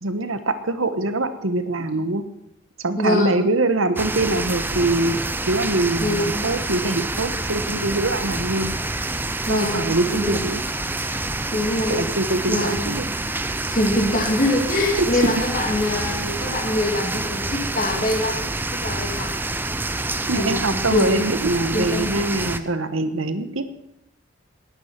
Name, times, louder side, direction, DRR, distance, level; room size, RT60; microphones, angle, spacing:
voice 1, 0.0-2.2 2.8-5.2 5.5-8.7 9.5-10.6 11.9-13.1 14.9-15.0 20.3-23.6, right 2 dB, 70° right, 10 dB, 1.3 m, -23 dB
voice 2, 2.9-3.4 6.0-6.5 9.5-10.4 11.5-12.0 12.5-13.1 13.7-19.3 20.3-21.4 21.7-22.1, left 1 dB, 40° left, 0 dB, 2.9 m, -24 dB
sound 1, 4.0-22.6, right 2 dB, 10° right, 0.6 m, -27 dB
19.5 x 9.9 x 6.0 m, 0.83 s
head